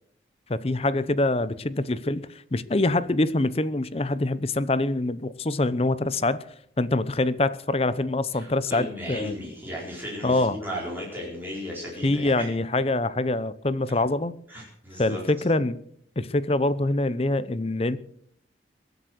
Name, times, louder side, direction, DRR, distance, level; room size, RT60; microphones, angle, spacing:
voice 1, 0.5-6.4 6.8-9.3 10.2-10.6 12.0-14.3 15.0-15.8 16.2-18.0, left 2 dB, 35° left, 0.7 m, -25 dB
voice 2, 8.3-12.5 13.9-14.0 14.5-15.2, equal, 10° right, 4.4 m, -35 dB
22.5 x 8.1 x 6.3 m
head